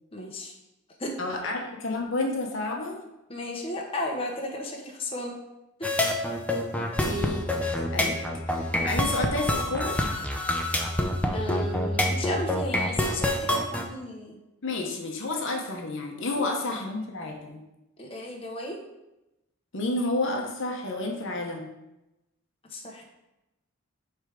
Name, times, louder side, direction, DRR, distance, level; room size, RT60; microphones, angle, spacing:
voice 1, 0.1-0.5 1.0-1.2 1.4-1.6 3.3-5.4 5.8-6.0 11.3-14.4 16.3-16.7 18.0-18.8 22.7-23.0, left 1 dB, 25° left, -1 dB, 0.9 m, -34 dB
voice 2, 1.2-3.0 6.7-8.2 8.5-10.0 14.6-17.6 19.7-21.7, left 2 dB, 55° left, 2 dB, 0.9 m, -30 dB
sound 1, 5.8-13.8, left 1 dB, 5° left, 0.5 m, -27 dB
8.0 x 3.3 x 5.1 m, 0.93 s
head